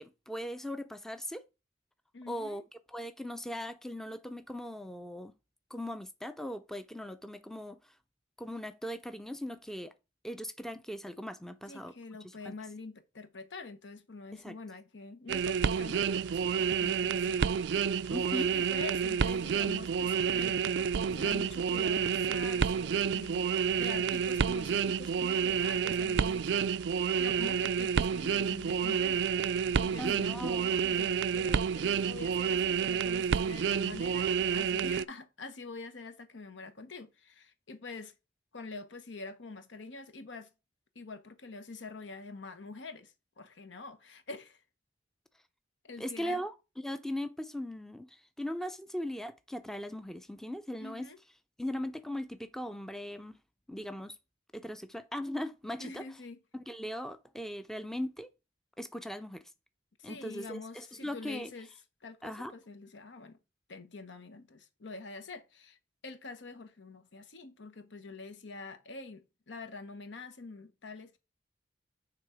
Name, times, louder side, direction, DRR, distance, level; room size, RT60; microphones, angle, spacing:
voice 1, 0.0-1.5 2.3-2.6 2.9-5.3 5.7-7.8 8.4-9.9 10.2-11.9 12.2-12.5 14.3-14.6 18.1-18.5 30.0-30.7 46.0-51.1 51.6-53.4 53.7-54.2 54.5-56.0 56.5-58.3 58.8-59.4 60.0-61.5 62.2-62.5, equal, ahead, 0.4 m, -39 dB
voice 2, 2.1-2.6 11.7-17.5 18.3-23.5 23.8-26.7 27.2-29.3 29.8-38.1 38.5-40.5 40.9-44.6 45.8-46.4 50.8-51.2 55.8-56.4 60.0-61.7 62.0-63.4 63.7-65.8 66.0-71.2, left 3 dB, 85° left, 1.0 m, -46 dB
sound 1, 15.3-35.0, right 7 dB, 65° right, 0.3 m, -29 dB
9.3 x 3.4 x 4.8 m
head